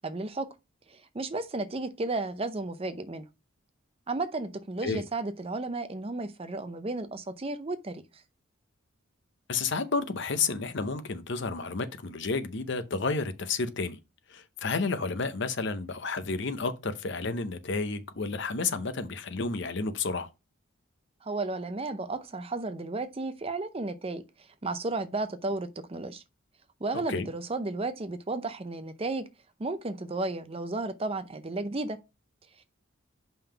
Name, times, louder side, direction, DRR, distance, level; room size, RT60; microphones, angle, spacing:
voice 1, 0.0-0.5 0.9-3.3 4.1-8.0 21.2-24.2 24.6-26.2 26.8-29.3 29.6-32.0, right 2 dB, 30° right, 0.6 m, -33 dB
voice 2, 9.5-14.0 14.3-20.3 26.9-27.3, left 4 dB, 60° left, 0.7 m, -31 dB
5.4 x 3.6 x 5.7 m
head